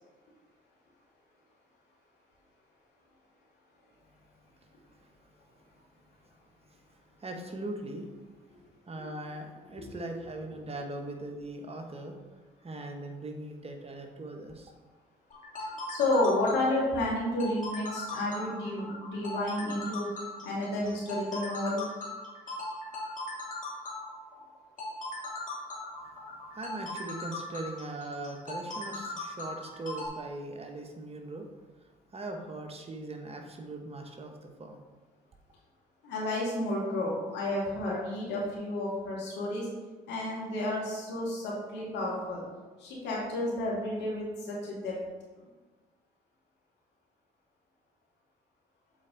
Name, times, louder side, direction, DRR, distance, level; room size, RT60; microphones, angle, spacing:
voice 1, 7.2-8.1 8.9-12.2 12.6-14.7 26.5-31.5 32.1-34.8, right 2 dB, 35° right, 4 dB, 1.2 m, -40 dB
voice 2, 9.8-10.3 15.9-20.1 20.4-21.8 36.0-39.7 40.1-42.4 42.8-45.0, left 1 dB, 70° left, -4 dB, 2.3 m, -31 dB
sound 1, 15.3-30.1, left 2 dB, 45° left, 2.1 m, -39 dB
7.5 x 4.6 x 3.9 m, 1.3 s
hypercardioid pair, 55°, 18 cm